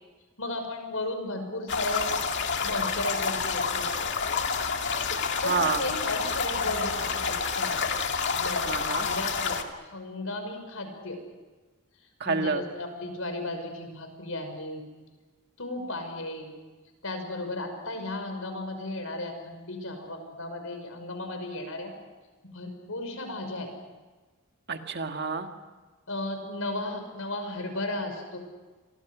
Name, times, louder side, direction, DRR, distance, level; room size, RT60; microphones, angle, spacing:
voice 1, 0.4-2.1 2.4-3.9 5.0-7.8 8.3-8.7 9.0-9.6 9.9-11.2 12.2-14.8 15.6-16.5 17.0-21.9 22.5-23.7 26.1-28.4, left 2 dB, 75° left, 6 dB, 5.9 m, -35 dB
sound 1, 1.7-9.6, left 5 dB, 55° left, 2.2 m, -29 dB
voice 2, 5.3-5.8 8.6-9.1 12.2-12.6 24.7-25.5, right 4 dB, 50° right, 5 dB, 2.0 m, -28 dB
30.0 x 24.0 x 6.3 m, 1.3 s
head